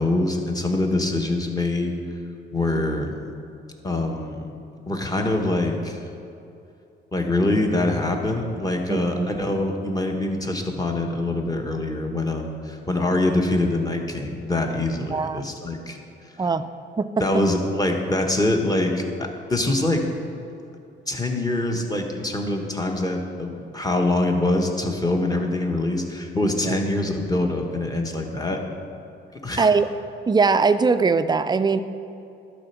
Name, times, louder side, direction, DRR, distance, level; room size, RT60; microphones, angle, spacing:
voice 1, 0.0-1.9 2.5-3.2 3.8-4.5 4.9-6.0 7.1-16.0 17.2-20.0 21.1-28.6 29.4-29.7, left 2 dB, 20° left, 2 dB, 1.2 m, -24 dB
voice 2, 8.9-9.3 15.1-15.5 16.4-16.7 17.0-17.2 26.6-26.7 29.6-29.9 30.3-31.8, right 4 dB, 20° right, 11 dB, 0.4 m, -21 dB
11.5 x 4.3 x 5.9 m, 2.7 s
cardioid pair, 90°, 20 cm